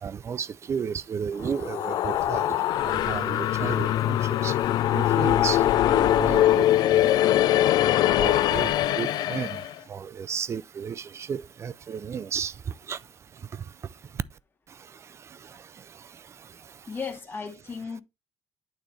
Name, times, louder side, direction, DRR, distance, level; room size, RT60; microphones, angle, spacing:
voice 1, 0.0-2.6 2.8-4.6 4.9-7.1 8.1-9.6 9.9-13.0 13.5-13.6 15.2-16.0, right 7 dB, 40° right, 0.4 m, -33 dB
sound 1, 1.4-9.7, left 13 dB, 70° left, 0.4 m, -22 dB
voice 2, 16.9-18.0, left 5 dB, 30° left, 1.6 m, -35 dB
9.0 x 3.3 x 4.2 m
cardioid pair, 100°, 7 cm